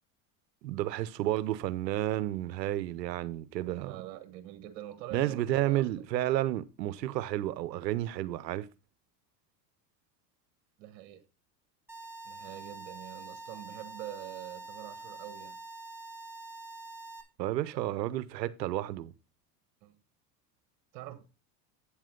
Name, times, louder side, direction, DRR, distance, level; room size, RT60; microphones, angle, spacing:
voice 1, 0.6-3.9 5.1-8.7 17.4-19.1, right 14 dB, 85° right, 0.9 m, -31 dB
voice 2, 3.7-6.1 10.8-11.2 12.2-15.6 19.8-19.9 20.9-21.2, right 13 dB, 60° right, 1.6 m, -44 dB
sound 1, 11.9-17.2, right 3 dB, 5° right, 1.8 m, -45 dB
8.6 x 7.4 x 3.7 m
hypercardioid pair, 100°, 49 cm